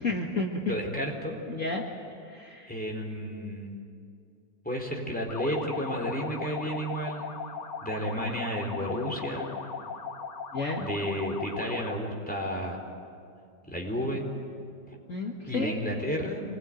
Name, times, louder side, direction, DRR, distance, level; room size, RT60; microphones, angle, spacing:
voice 1, 0.0-0.7 1.5-1.8 2.2-2.7 10.5-10.9 15.1-15.8, left 3 dB, 45° left, 0 dB, 2.2 m, -31 dB
voice 2, 0.7-1.4 2.7-3.8 4.6-7.4 7.8-9.6 10.8-12.8 13.7-14.3 14.9-15.0 15.5-16.4, equal, 5° left, 0 dB, 4.2 m, -32 dB
sound 1, 5.3-12.1, left 5 dB, 70° left, 2.1 m, -38 dB
27.0 x 21.0 x 9.3 m, 2.4 s
omnidirectional pair, 2.0 m